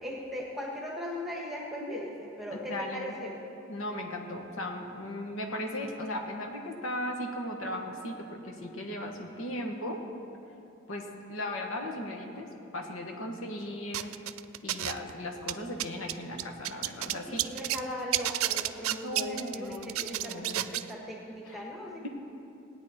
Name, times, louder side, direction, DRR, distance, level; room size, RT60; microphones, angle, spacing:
voice 1, 0.0-3.4 15.6-15.7 16.1-16.4 17.1-22.1, equal, ahead, -3 dB, 1.4 m, -39 dB
voice 2, 2.7-3.2 3.7-10.0 10.9-14.1 14.6-17.4 19.0-19.9 20.1-20.8 21.5-21.6, left 1 dB, 85° left, 2 dB, 1.4 m, -37 dB
sound 1, 13.9-15.1 15.4-17.8 18.1-20.9, right 14 dB, 85° right, 0.4 m, -31 dB
17.0 x 9.5 x 4.4 m, 2.7 s
head